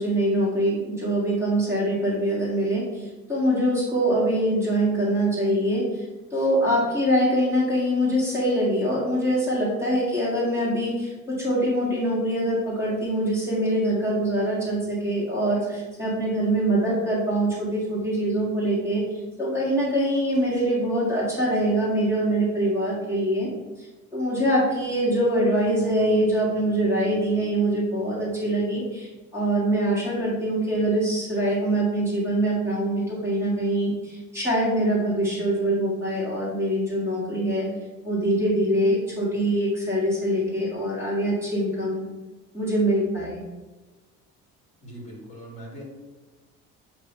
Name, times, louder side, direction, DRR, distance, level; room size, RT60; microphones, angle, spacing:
voice 1, 0.0-6.0 6.3-19.0 19.4-23.5 23.8-23.9 24.1-37.7 38.0-42.0 42.5-43.4, right 1 dB, 10° right, -8 dB, 1.9 m, -24 dB
voice 2, 44.8-45.8, right 1 dB, 25° left, -4 dB, 1.9 m, -41 dB
8.1 x 2.8 x 5.3 m, 1.2 s
cardioid pair, 165°, 30 cm